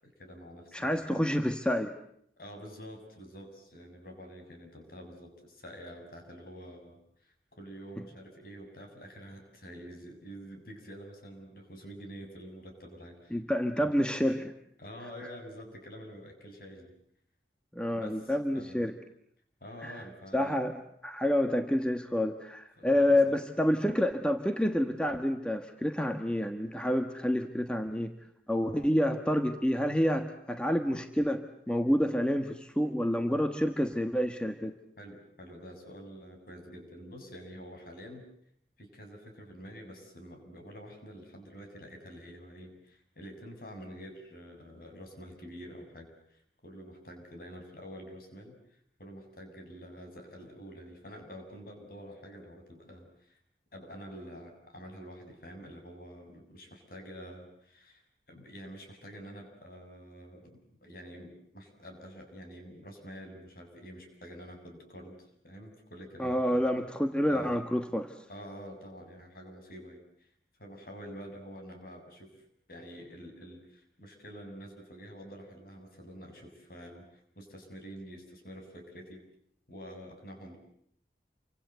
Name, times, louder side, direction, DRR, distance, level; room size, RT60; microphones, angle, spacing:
voice 1, 0.0-1.1 2.4-13.4 13.7-13.9 14.8-16.9 17.9-18.9 19.6-20.6 22.8-23.4 35.0-38.2 38.8-48.6 49.0-53.4 53.7-58.0 58.3-66.6 67.3-67.6 68.3-70.3 70.6-79.2 79.7-80.6, equal, 55° left, 4 dB, 6.9 m, -47 dB
voice 2, 0.7-1.9 13.3-14.5 17.7-18.9 19.8-20.0 20.3-28.1 28.5-34.7 66.2-68.1, left 1 dB, 5° left, 6 dB, 1.2 m, -28 dB
29.0 x 25.0 x 8.0 m, 0.67 s
head